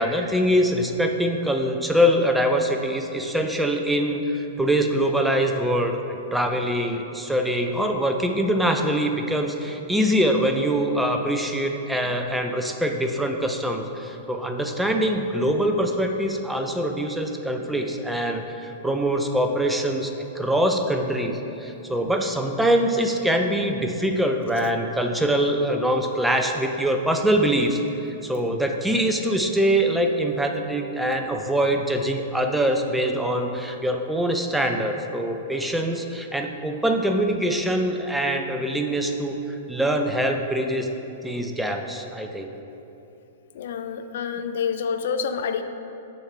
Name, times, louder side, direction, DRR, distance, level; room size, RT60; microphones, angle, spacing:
voice 1, 0.0-40.9 41.2-42.5, equal, 5° right, 3 dB, 0.4 m, -24 dB
voice 2, 43.5-45.6, left 6 dB, 60° left, 8 dB, 0.3 m, -27 dB
6.3 x 3.2 x 5.6 m, 2.9 s
figure-of-eight pair, 105°, 0 cm